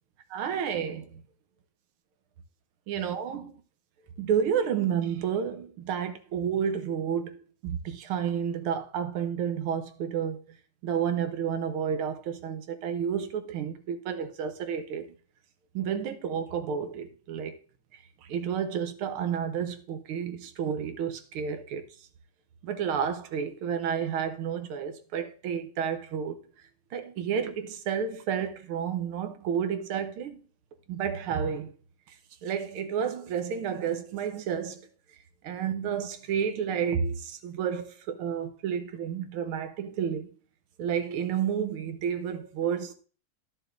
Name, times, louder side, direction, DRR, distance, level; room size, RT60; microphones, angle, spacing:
voice 1, 0.3-1.2 2.9-3.5 4.2-7.4 7.6-10.4 10.8-15.1 15.7-17.6 18.2-22.0 22.6-26.4 26.9-30.4 30.9-31.7 32.1-32.2 32.4-34.8 35.4-40.3 40.8-42.9, right 8 dB, 80° right, 1.8 m, -31 dB
13.0 x 6.4 x 2.6 m
omnidirectional pair, 2.3 m